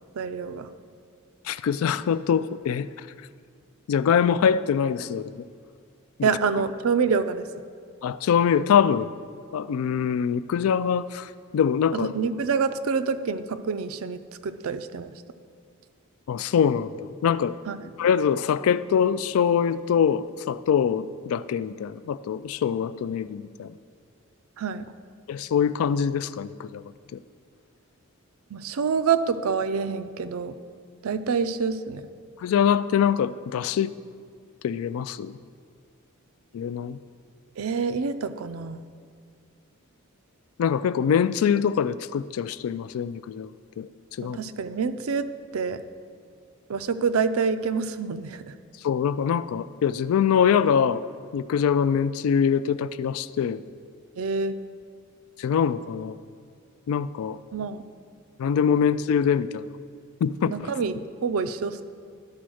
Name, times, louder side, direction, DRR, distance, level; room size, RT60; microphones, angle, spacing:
voice 1, 0.2-0.7 6.2-7.5 11.9-15.1 17.7-17.9 24.6-24.9 28.5-30.5 31.0-32.0 37.6-38.8 44.2-45.3 45.5-45.8 46.7-48.5 54.2-54.5 57.5-57.8 60.5-61.8, right 5 dB, 80° right, 11 dB, 0.4 m, -27 dB
voice 2, 1.4-3.1 3.9-5.4 6.2-6.3 8.0-9.1 9.5-12.1 16.3-16.9 17.2-17.6 18.0-23.7 25.3-26.8 27.1-27.2 32.4-33.9 34.6-35.4 36.5-37.0 40.6-43.5 43.8-43.9 44.2-44.4 48.8-51.0 51.3-53.6 55.4-56.2 56.9-57.4 58.4-59.6 60.2-60.6, left 7 dB, 80° left, 15 dB, 0.3 m, -24 dB
11.5 x 4.2 x 6.2 m, 2.1 s
head